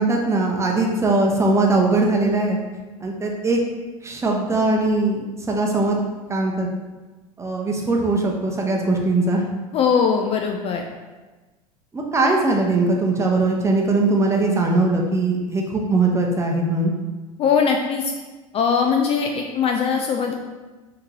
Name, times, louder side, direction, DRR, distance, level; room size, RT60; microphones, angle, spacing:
voice 1, 0.0-2.6 3.0-3.6 4.0-6.0 6.3-6.7 7.4-9.4 11.9-16.9, right 2 dB, 15° right, 0 dB, 0.8 m, -20 dB
voice 2, 9.7-10.9 17.4-18.1 18.5-20.3, left 6 dB, 30° left, 3 dB, 0.4 m, -20 dB
5.7 x 2.9 x 2.9 m, 1.2 s
figure-of-eight pair, 75°, 18 cm